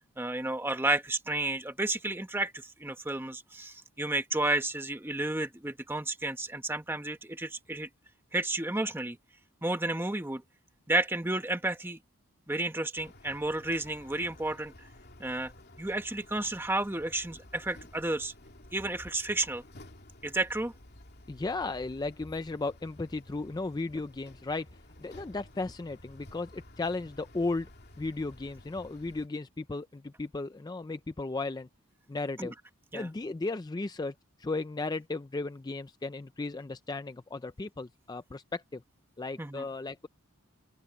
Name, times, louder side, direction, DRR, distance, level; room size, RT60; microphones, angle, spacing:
voice 1, 0.2-7.9 8.3-9.2 9.6-10.4 10.9-12.0 12.5-14.9 15.2-15.5 15.8-18.3 18.7-19.6 20.2-20.7 32.4-32.5 32.9-33.1 39.4-39.7, right 2 dB, 10° right, 1.1 m, -32 dB
sound 1, 13.0-29.3, left 1 dB, 45° left, 3.0 m, -53 dB
voice 2, 21.3-24.7 25.0-27.7 28.0-31.7 32.1-32.5 32.9-34.1 34.4-38.8 39.2-40.1, left 3 dB, 20° left, 0.4 m, -35 dB
open air
head